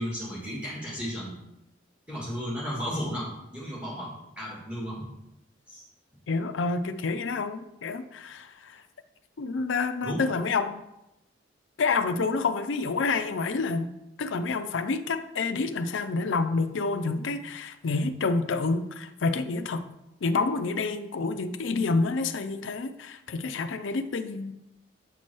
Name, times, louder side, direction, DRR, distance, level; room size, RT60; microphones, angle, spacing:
voice 1, 0.0-1.4 2.1-5.1 5.7-5.8 10.0-10.2, equal, 5° right, -5 dB, 2.2 m, -34 dB
voice 2, 6.3-8.8 9.4-10.8 11.8-13.9 14.2-19.9 20.2-24.5, left 4 dB, 85° left, 9 dB, 0.5 m, -28 dB
7.8 x 4.4 x 4.6 m, 0.87 s
head